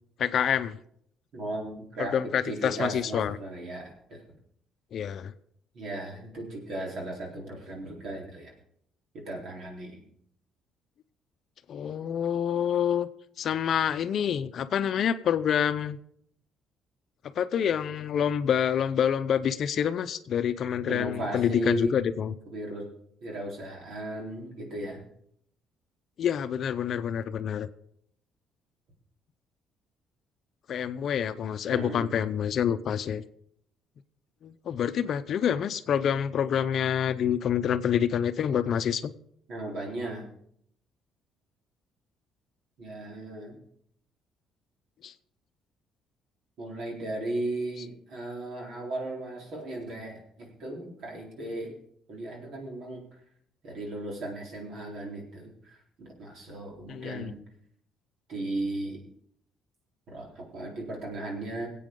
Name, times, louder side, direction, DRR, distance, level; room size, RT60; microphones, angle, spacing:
voice 1, 0.2-0.8 2.0-3.4 4.9-5.3 11.7-13.1 13.4-16.0 17.3-22.3 26.2-27.7 30.7-33.2 34.4-39.1 45.0-45.1 56.9-57.3, left 8 dB, 55° left, 11 dB, 0.6 m, -27 dB
voice 2, 1.3-2.1 2.5-4.2 5.7-8.5 9.1-10.0 20.9-22.0 22.5-22.9 23.2-25.0 31.7-32.1 39.5-40.3 42.8-43.6 46.6-51.8 52.1-53.0 53.6-57.4 58.3-59.1 60.1-61.7, right 2 dB, 60° right, -1 dB, 3.8 m, -36 dB
22.5 x 8.5 x 3.8 m, 0.70 s
cardioid pair, 125°, 0 cm